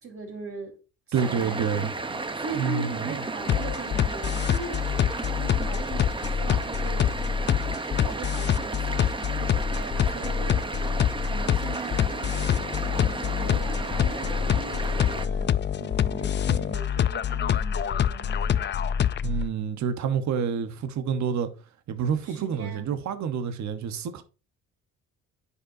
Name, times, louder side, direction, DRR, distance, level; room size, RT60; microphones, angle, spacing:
voice 1, 0.0-0.7 1.2-1.7 2.1-4.9 5.3-7.1 7.9-12.5 12.8-19.0 22.3-23.0, right 4 dB, 50° right, 3.9 m, -40 dB
sound 1, 1.1-15.3, right 3 dB, 15° right, 0.8 m, -33 dB
voice 2, 1.1-1.9 2.5-3.1 19.2-21.5 21.9-24.2, right 7 dB, 65° right, 1.1 m, -28 dB
sound 2, 3.5-19.5, left 9 dB, 35° left, 0.4 m, -26 dB
9.6 x 5.6 x 2.6 m
cardioid pair, 90°, 30 cm